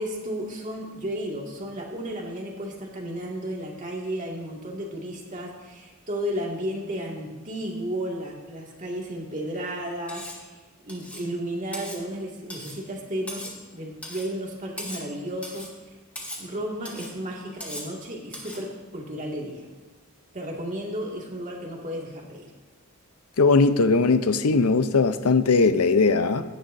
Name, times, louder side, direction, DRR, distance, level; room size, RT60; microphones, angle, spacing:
voice 1, 0.0-15.9 16.4-19.7 20.3-22.5, equal, 35° right, -2 dB, 2.0 m, -33 dB
Cutlery silverware, 10.1-10.4 10.9-11.3 11.7-12.0 12.5-12.8 13.3-13.6 14.0-14.3 14.8-15.1 15.4-15.7 16.2-16.5 16.9-17.1 17.6-17.9 18.3-18.6, left 1 dB, 5° left, 1.8 m, -38 dB
voice 2, 23.4-26.4, left 4 dB, 85° left, 11 dB, 0.6 m, -19 dB
17.0 x 10.0 x 2.6 m, 1.3 s
head